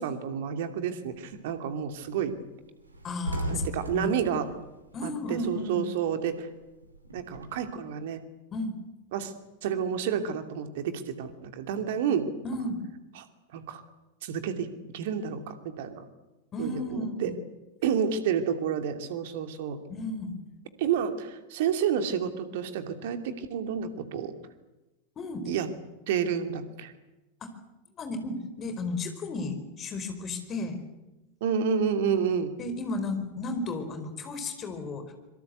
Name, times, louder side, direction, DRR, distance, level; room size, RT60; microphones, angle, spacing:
voice 1, 0.0-2.4 3.5-4.5 5.0-6.5 7.1-8.2 9.1-9.3 9.6-12.3 13.5-13.8 14.2-16.0 16.6-17.3 17.8-19.8 20.8-24.3 25.5-25.7 26.1-26.9 31.4-32.5, right 7 dB, 55° right, 8 dB, 2.6 m, -30 dB
sound 1, 1.1-1.5 1.9-2.0 2.3-2.4 2.7-5.7 6.0-7.7, equal, 80° right, 3.2 m, -36 dB
voice 2, 3.0-3.6 3.9-4.2 4.9-5.8 8.5-8.7 12.4-12.8 16.5-17.4 19.9-20.3 25.2-25.5 27.4-27.6 27.9-30.8 32.6-35.0, left 2 dB, 25° left, 8 dB, 4.7 m, -33 dB
25.5 x 23.0 x 8.2 m, 1.0 s
figure-of-eight pair, 90°, 0 cm